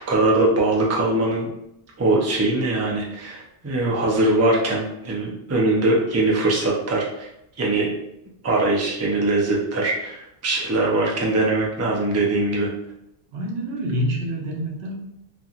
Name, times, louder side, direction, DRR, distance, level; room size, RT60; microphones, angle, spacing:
voice 1, 0.1-1.5 2.0-7.3 7.6-7.9 8.4-12.7, right 2 dB, 25° right, -3 dB, 0.3 m, -21 dB
voice 2, 13.3-14.9, equal, 90° right, -1 dB, 0.9 m, -26 dB
2.8 x 2.5 x 2.4 m, 0.82 s
omnidirectional pair, 1.0 m